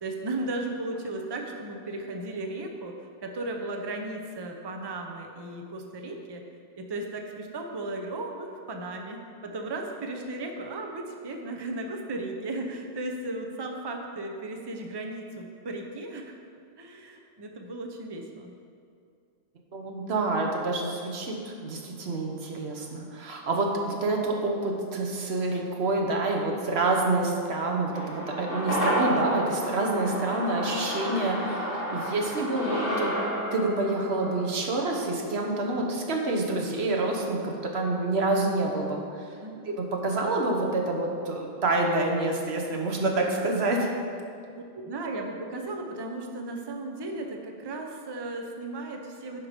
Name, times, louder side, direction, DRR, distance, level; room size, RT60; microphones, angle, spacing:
voice 1, 0.0-2.9 3.2-6.4 6.8-16.3 16.8-18.5 39.4-39.6 44.7-49.5, right 2 dB, 30° right, 2 dB, 0.6 m, -35 dB
voice 2, 19.7-33.2 33.5-39.2 39.7-43.9, right 2 dB, 90° right, 1 dB, 1.3 m, -27 dB
sound 1, 27.9-36.4 36.7-36.8, equal, 60° left, 1.8 m, -31 dB
9.8 x 4.7 x 5.1 m, 2.3 s
omnidirectional pair, 1.0 m